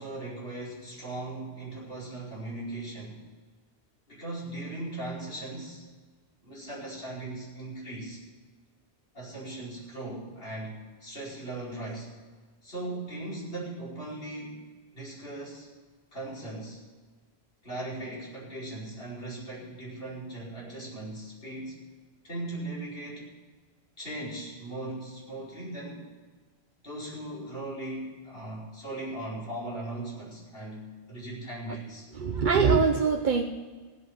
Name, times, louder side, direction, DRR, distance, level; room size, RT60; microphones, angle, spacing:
voice 1, 0.0-3.2 4.1-5.9 6.4-8.2 9.1-12.1 12.6-15.7 16.1-16.8 17.6-21.8 22.2-23.3 24.0-26.1 26.8-32.1, right 2 dB, 70° left, -6 dB, 5.4 m, -38 dB
voice 2, 32.1-33.4, right 5 dB, 55° right, 3 dB, 0.9 m, -23 dB
16.0 x 5.9 x 9.9 m, 1.4 s
omnidirectional pair, 1.0 m